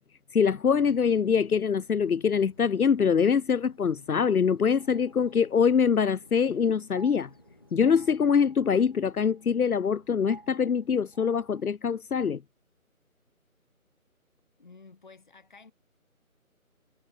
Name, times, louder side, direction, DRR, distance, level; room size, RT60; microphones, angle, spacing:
voice 1, 0.3-7.3 7.7-12.4, left 6 dB, 80° left, 0.7 m, -24 dB
sound 1, 0.8-8.2, left 3 dB, 15° left, 1.7 m, -58 dB
sound 2, 4.7-11.6, right 3 dB, 40° right, 3.3 m, -56 dB
voice 2, 14.6-15.7, left 4 dB, 35° left, 5.7 m, -52 dB
figure-of-eight pair, 170°, 43 cm